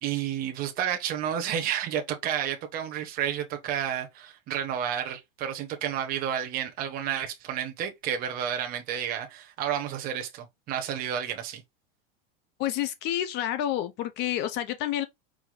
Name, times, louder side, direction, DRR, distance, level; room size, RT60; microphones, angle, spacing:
voice 1, 0.0-11.6, right 9 dB, 30° right, 0.9 m, -31 dB
voice 2, 12.6-15.1, left 12 dB, 35° left, 0.6 m, -29 dB
4.9 x 2.6 x 3.9 m
supercardioid pair, 160°, 29 cm